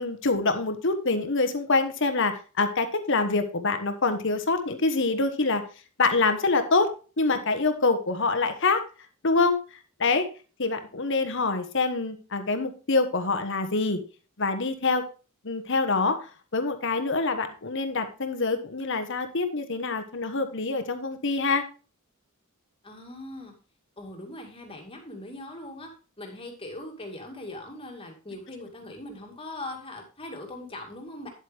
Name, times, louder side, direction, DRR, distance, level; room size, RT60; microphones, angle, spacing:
voice 1, 0.0-5.6 6.0-6.9 7.2-8.8 9.2-9.6 10.0-10.3 10.6-14.0 14.4-15.0 15.4-16.2 16.5-21.6, left 3 dB, 55° left, 8 dB, 1.2 m, -25 dB
voice 2, 22.8-23.6 24.0-31.3, left 1 dB, 25° left, 2 dB, 2.2 m, -40 dB
10.0 x 8.0 x 3.4 m, 0.35 s
head